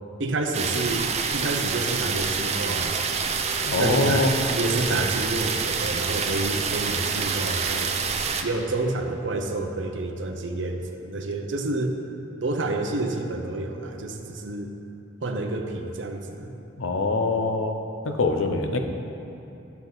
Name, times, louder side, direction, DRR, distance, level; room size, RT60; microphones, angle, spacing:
voice 1, 0.2-3.0 3.8-8.0 8.4-12.0 12.4-14.7 15.2-16.6, right 2 dB, 65° right, 3 dB, 0.7 m, -29 dB
sound 1, 0.5-8.4, right 5 dB, 35° right, 0.5 m, -27 dB
voice 2, 3.7-4.3 16.8-17.8 18.0-18.8, left 3 dB, 90° left, 5 dB, 0.7 m, -23 dB
10.5 x 7.0 x 4.0 m, 2.8 s
head